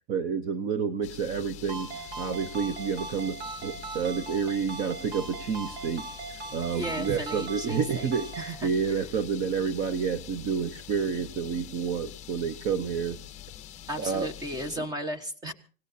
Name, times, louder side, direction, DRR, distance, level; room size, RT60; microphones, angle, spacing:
voice 1, 0.1-1.9 2.2-3.4 3.6-6.0 6.3-13.2 14.0-14.3, right 6 dB, 30° right, 13 dB, 0.8 m, -29 dB
sound 1, 1.0-14.8, left 12 dB, 20° left, 1.0 m, -45 dB
Ringtone, 1.7-8.6, right 4 dB, 80° right, 4.0 m, -40 dB
voice 2, 6.7-8.1 8.4-9.0 13.9-15.5, equal, 10° right, 11 dB, 1.3 m, -35 dB
26.5 x 17.5 x 2.8 m, 0.39 s
supercardioid pair, 155°, 33 cm